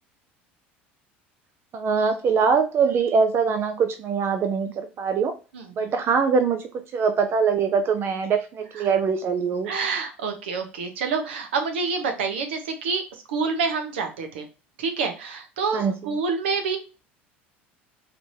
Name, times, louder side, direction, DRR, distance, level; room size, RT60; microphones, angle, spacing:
voice 1, 1.7-5.3 5.8-9.7 15.7-15.9, right 5 dB, 40° right, 7 dB, 0.6 m, -23 dB
voice 2, 9.7-14.5 14.8-16.8, right 5 dB, 75° right, 5 dB, 1.0 m, -27 dB
4.9 x 3.4 x 2.7 m, 0.32 s
figure-of-eight pair, 70°, 6 cm